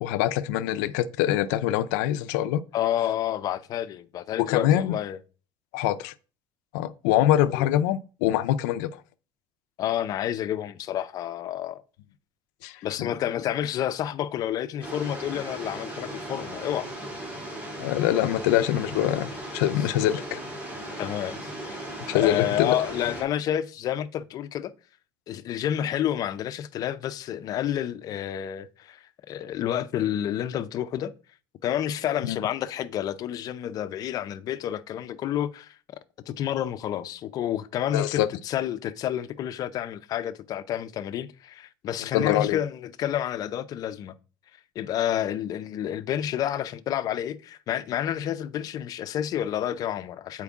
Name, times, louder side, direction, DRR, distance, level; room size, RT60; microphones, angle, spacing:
voice 1, 0.0-2.6 4.4-5.0 5.7-6.1 6.7-9.0 12.6-13.1 17.8-20.4 22.1-22.8 32.2-32.4 37.9-38.3 42.1-42.6, left 12 dB, 90° left, 0.5 m, -24 dB
voice 2, 2.7-5.2 7.6-7.7 9.8-11.8 12.8-16.9 21.0-21.8 22.1-24.7 25.3-31.1 31.6-35.8 36.3-44.2 44.8-50.4, left 11 dB, 40° left, 0.5 m, -29 dB
sound 1, 14.8-23.2, right 1 dB, 15° right, 2.3 m, -37 dB
8.4 x 4.5 x 3.5 m
cardioid pair, 150°, 10 cm